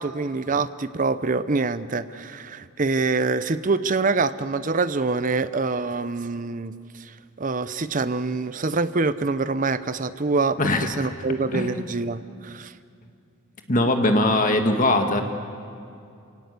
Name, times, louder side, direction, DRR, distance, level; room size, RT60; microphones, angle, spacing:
voice 1, 0.0-6.7 7.0-7.1 7.4-12.7, right 3 dB, 35° right, 13 dB, 0.7 m, -25 dB
voice 2, 10.6-11.1 11.5-11.8 13.7-15.2, left 1 dB, 35° left, 5 dB, 1.7 m, -21 dB
28.5 x 18.0 x 8.2 m, 2.5 s
head